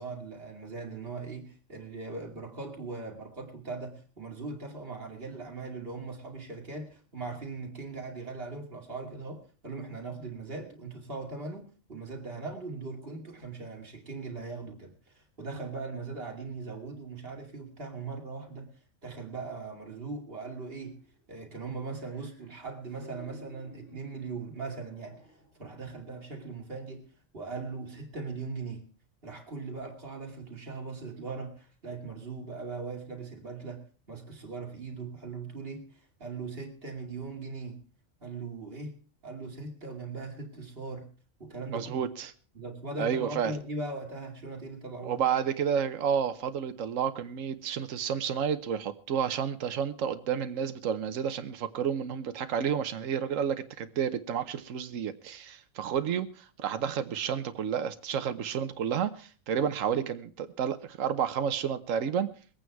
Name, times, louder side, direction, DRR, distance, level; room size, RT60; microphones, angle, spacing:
voice 1, 0.0-18.7 19.0-21.0 21.3-25.2 25.6-28.9 29.2-37.8 38.2-39.0 39.2-41.1 41.4-42.1 42.5-45.2, right 3 dB, 45° right, 2 dB, 2.7 m, -40 dB
sound 1, 20.4-21.2 21.6-25.8 26.1-26.3, left 1 dB, 75° left, 8.1 m, -56 dB
voice 2, 41.7-42.3 43.0-43.5 45.0-62.3, right 8 dB, 75° right, 10 dB, 1.3 m, -30 dB
22.0 x 8.9 x 4.6 m, 0.39 s
omnidirectional pair, 1.4 m